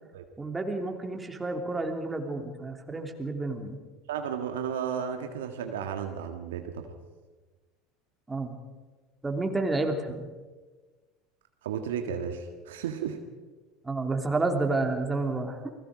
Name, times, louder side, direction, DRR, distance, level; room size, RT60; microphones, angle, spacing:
voice 1, 0.4-3.8 8.3-8.6 9.2-10.3 13.8-15.6, right 3 dB, 15° right, 4 dB, 3.1 m, -30 dB
voice 2, 4.1-6.9 11.6-13.2, right 8 dB, 70° right, 5 dB, 1.8 m, -33 dB
29.0 x 20.0 x 5.1 m, 1.3 s
figure-of-eight pair, 70°, 0 cm